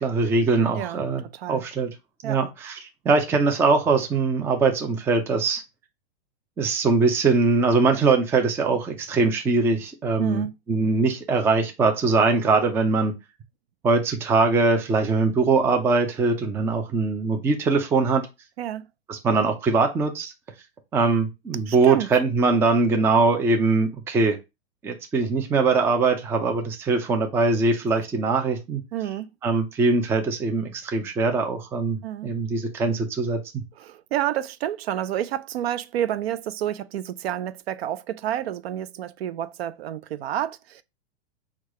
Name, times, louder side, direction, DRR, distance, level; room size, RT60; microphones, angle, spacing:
voice 1, 0.0-1.9 2.2-5.6 6.6-13.1 13.8-18.2 19.1-20.3 20.9-24.4 24.8-28.8 29.4-33.6, right 4 dB, 10° right, 0.4 m, -22 dB
voice 2, 10.2-10.5 18.6-18.9 21.7-22.1 28.9-29.3 32.0-32.3 33.8-40.8, right 11 dB, 65° right, 0.6 m, -29 dB
4.5 x 2.4 x 4.8 m
hypercardioid pair, 135°, 33 cm